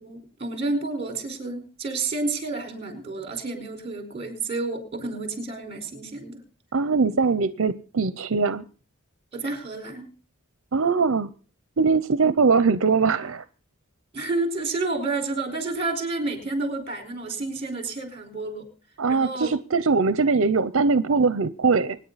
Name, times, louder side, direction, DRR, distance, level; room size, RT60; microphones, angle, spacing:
voice 1, 0.0-6.4 9.3-10.1 14.1-18.7 19.1-19.5, right 3 dB, 30° right, 6 dB, 4.6 m, -30 dB
voice 2, 6.7-8.6 10.7-11.3 11.8-13.4 19.0-22.0, right 4 dB, 65° right, 14 dB, 0.6 m, -21 dB
25.0 x 10.0 x 4.1 m, 0.39 s
head